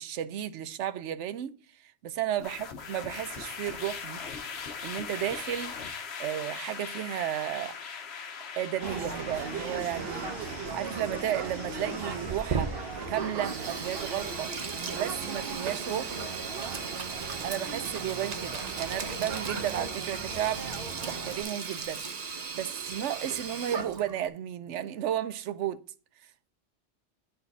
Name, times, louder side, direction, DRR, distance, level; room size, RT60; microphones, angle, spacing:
voice 1, 0.0-1.5 2.0-4.2 4.8-5.7 6.2-7.8 8.6-10.2 10.7-12.7 13.1-14.5 14.9-16.2 17.4-20.7 21.0-22.0 22.5-25.8, right 11 dB, 90° right, 0.9 m, -33 dB
sound 1, 2.4-21.6, left 6 dB, 65° left, 1.2 m, -43 dB
sound 2, 8.8-21.4, right 4 dB, 60° right, 1.1 m, -38 dB
Sink (filling or washing), 12.3-24.3, right 5 dB, 40° right, 0.7 m, -37 dB
10.5 x 4.0 x 4.1 m
omnidirectional pair, 1.2 m